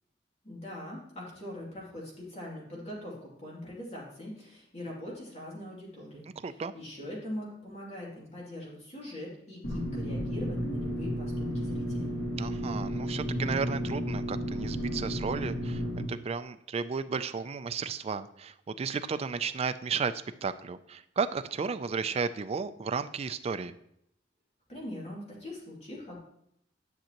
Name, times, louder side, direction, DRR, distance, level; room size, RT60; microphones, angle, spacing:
voice 1, 0.4-6.3 6.7-12.1 24.7-26.2, left 1 dB, 35° left, -4 dB, 2.6 m, -42 dB
voice 2, 6.4-6.7 12.4-23.8, right 5 dB, 35° right, 11 dB, 0.3 m, -33 dB
sound 1, 9.6-16.0, equal, 90° left, 1.9 m, -32 dB
10.5 x 6.3 x 2.9 m, 0.75 s
head